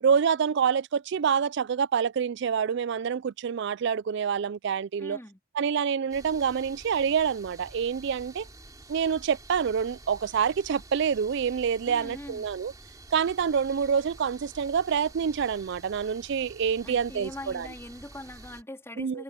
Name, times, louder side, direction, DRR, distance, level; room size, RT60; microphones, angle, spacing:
voice 1, 0.0-5.2 5.6-8.5 8.9-12.7 13.1-17.7 19.0-19.2, right 7 dB, 60° right, 0.3 m, -27 dB
voice 2, 5.0-5.4 11.8-12.4 16.8-19.2, left 1 dB, 15° left, 3.4 m, -42 dB
sound 1, 6.1-18.6, right 2 dB, 20° right, 2.9 m, -49 dB
head